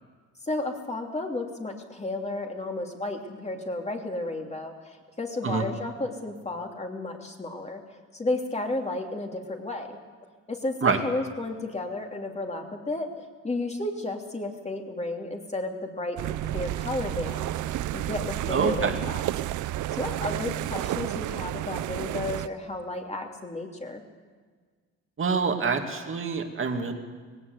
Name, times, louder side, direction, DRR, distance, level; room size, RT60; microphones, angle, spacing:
voice 1, 0.4-7.8 8.1-9.9 10.5-17.5 17.9-19.2 20.0-24.0, left 2 dB, 20° left, 2 dB, 3.0 m, -33 dB
sound 1, 16.2-22.5, right 13 dB, 80° right, 0.6 m, -31 dB
voice 2, 18.5-19.0 25.2-26.9, right 5 dB, 45° right, 4 dB, 2.5 m, -26 dB
19.0 x 17.5 x 8.2 m, 1.5 s
cardioid pair, 90°, 30 cm